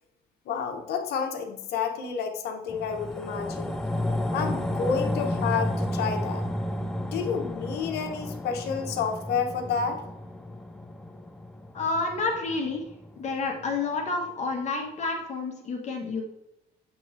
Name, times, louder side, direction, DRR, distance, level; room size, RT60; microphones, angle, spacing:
voice 1, 0.5-3.7 4.3-6.4 7.1-10.0, left 6 dB, 70° left, 4 dB, 1.0 m, -30 dB
sound 1, 2.7-13.3 13.7-13.8, left 1 dB, 5° left, 0.5 m, -32 dB
voice 2, 11.7-12.8 13.2-16.2, left 3 dB, 45° left, 1 dB, 1.3 m, -29 dB
7.6 x 3.1 x 4.0 m, 0.85 s
cardioid pair, 110°, 17 cm